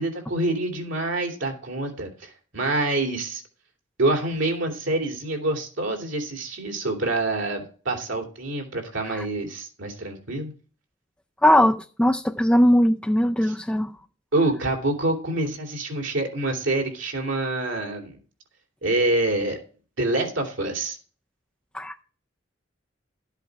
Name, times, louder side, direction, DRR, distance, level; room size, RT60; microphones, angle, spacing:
voice 1, 0.0-3.4 4.0-10.5 13.4-13.5 14.3-18.2 18.8-19.6 20.0-21.0, right 2 dB, 75° right, 2.9 m, -26 dB
voice 2, 11.4-13.9 21.7-22.0, equal, 5° left, 0.4 m, -20 dB
12.5 x 8.1 x 4.7 m
head